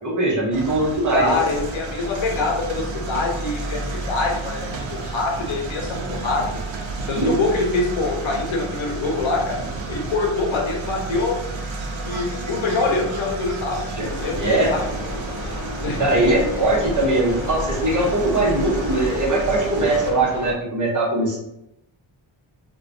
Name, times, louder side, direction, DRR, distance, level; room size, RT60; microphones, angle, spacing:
voice 1, 0.0-1.3 7.1-7.4 14.0-14.1 14.3-14.7 16.0-21.4, right 2 dB, 40° right, -4 dB, 0.8 m, -21 dB
sound 1, 0.5-20.1, right 3 dB, 70° right, 0.6 m, -31 dB
voice 2, 1.1-6.5 7.1-9.6 9.9-11.3 12.0-14.8 15.8-16.1, left 3 dB, 75° left, 1 dB, 0.7 m, -24 dB
sound 2, 14.0-20.5, left 2 dB, 35° left, 0.5 m, -31 dB
2.3 x 2.1 x 2.5 m, 0.83 s
wide cardioid pair, 105°, 47 cm